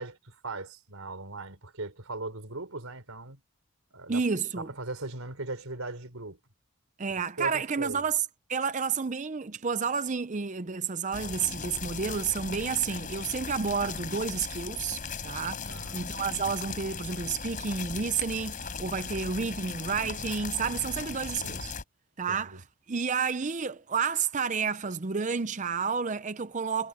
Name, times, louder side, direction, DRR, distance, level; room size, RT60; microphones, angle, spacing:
voice 1, 0.0-3.4 3.9-4.3 4.6-6.4 7.4-8.0 15.7-16.1 21.4-21.6 22.3-22.6, right 2 dB, 80° right, 3.9 m, -39 dB
voice 2, 4.1-4.7 7.0-8.2 8.5-21.7 22.2-26.9, right 5 dB, 35° right, 0.6 m, -30 dB
sound 1, 11.1-21.8, left 5 dB, 40° left, 4.4 m, -38 dB
head